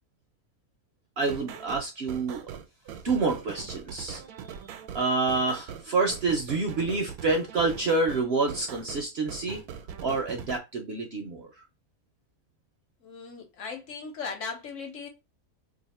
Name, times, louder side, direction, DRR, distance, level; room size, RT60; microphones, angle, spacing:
voice 1, 1.2-2.4 3.0-4.5 4.9-9.6 10.0-11.5, right 3 dB, 60° right, 0.7 m, -28 dB
sound 1, 1.2-10.6, right 8 dB, 90° right, 1.1 m, -41 dB
voice 2, 13.0-15.1, left 5 dB, 65° left, 1.2 m, -38 dB
2.8 x 2.5 x 4.1 m
omnidirectional pair, 1.5 m